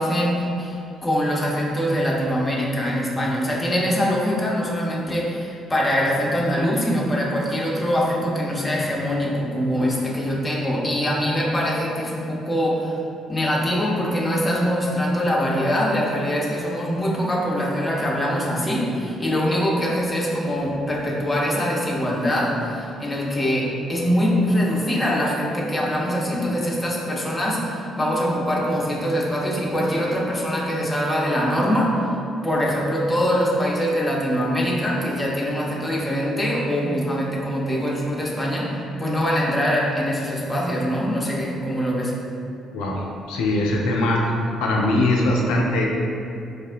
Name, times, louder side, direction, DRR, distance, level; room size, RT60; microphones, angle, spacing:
voice 1, 0.0-13.0 13.3-32.1 32.4-42.2, equal, 20° left, -4 dB, 0.6 m, -23 dB
voice 2, 42.7-44.2 44.6-45.9, left 1 dB, 65° left, -2 dB, 0.3 m, -21 dB
4.3 x 2.0 x 2.5 m, 2.7 s
figure-of-eight pair, 45°, 0 cm